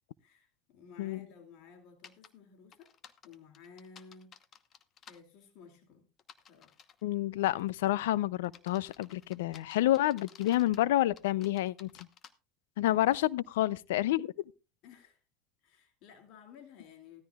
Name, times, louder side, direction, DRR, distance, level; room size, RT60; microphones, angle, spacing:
voice 1, 0.2-2.9 3.2-4.4 5.0-6.1 6.5-6.8 14.8-15.2 15.6-17.2, left 6 dB, 60° left, 2.6 m, -55 dB
sound 1, 2.0-2.3 2.7-5.2 6.2-7.0 7.6-7.9 8.4-10.8 11.2-12.3, left 8 dB, 40° left, 1.0 m, -55 dB
voice 2, 7.0-11.9 12.8-14.3, left 14 dB, 85° left, 0.5 m, -29 dB
16.0 x 13.5 x 2.4 m
supercardioid pair, 110°, 0 cm